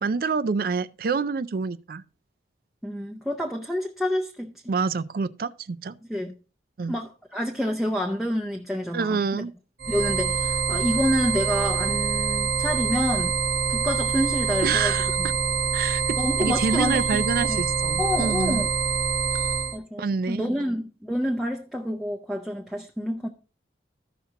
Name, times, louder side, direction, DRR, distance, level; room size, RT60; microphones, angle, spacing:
voice 1, 0.0-2.0 4.7-6.0 6.8-7.0 8.9-9.5 14.6-15.3 15.7-18.7 20.0-20.5, right 5 dB, 50° right, 0.4 m, -27 dB
voice 2, 2.8-4.5 6.1-6.3 6.9-9.4 9.9-13.4 13.7-15.3 16.2-17.6 18.0-18.7 19.7-23.3, equal, ahead, 0.5 m, -28 dB
sound 1, 9.8-19.8, right 5 dB, 85° right, 1.2 m, -25 dB
14.5 x 5.8 x 2.8 m
head